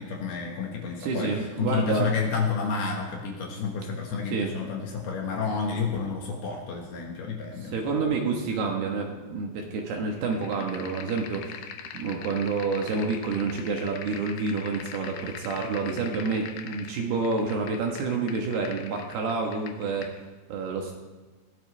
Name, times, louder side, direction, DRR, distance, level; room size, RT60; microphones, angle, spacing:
voice 1, 0.0-8.1, left 5 dB, 65° left, 0 dB, 3.0 m, -30 dB
voice 2, 1.0-2.1 4.3-4.5 7.6-20.1 20.5-20.9, right 4 dB, 65° right, 1 dB, 2.9 m, -29 dB
sound 1, 10.1-20.2, left 8 dB, 80° left, 2.1 m, -43 dB
20.0 x 16.0 x 3.3 m, 1.3 s
omnidirectional pair, 5.6 m